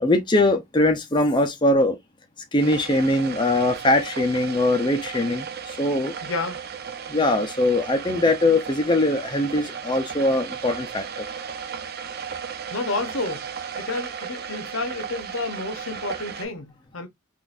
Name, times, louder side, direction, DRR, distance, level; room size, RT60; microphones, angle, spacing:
voice 1, 0.0-2.0 2.5-6.1 7.1-11.3, left 2 dB, 25° left, 0.6 m, -21 dB
sound 1, 2.6-16.4, right 7 dB, 50° right, 0.5 m, -35 dB
voice 2, 6.2-6.6 12.7-13.5 13.8-17.1, left 3 dB, 85° left, 0.9 m, -30 dB
3.9 x 2.6 x 2.4 m
head